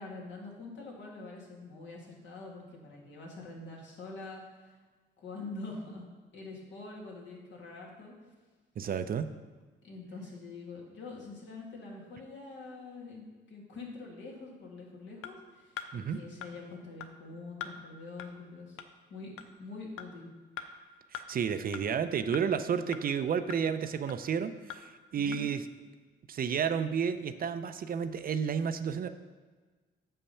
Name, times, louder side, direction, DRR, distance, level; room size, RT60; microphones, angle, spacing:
voice 1, 0.0-4.8 5.2-8.1 9.8-15.7 16.1-18.8 19.1-19.3 19.6-20.3 25.2-25.4, left 3 dB, 70° left, -2 dB, 2.2 m, -45 dB
voice 2, 8.8-9.3 15.9-16.2 21.1-25.6 26.3-29.1, right 7 dB, 45° right, 10 dB, 0.5 m, -31 dB
sound 1, 15.2-15.3 15.8-15.9 16.4-16.5 17.0-17.1 17.6-17.7 18.2-18.3 18.8-18.9 19.4-19.5 20.0-20.1 20.6-20.7 21.1-21.3 21.7-21.8 22.3-22.4 22.9-23.0 23.5-23.6 24.1-24.2 24.7-24.8 25.3-25.4, left 9 dB, 85° left, 0.6 m, -41 dB
7.3 x 5.5 x 5.6 m, 1.4 s
cardioid pair, 90°, 20 cm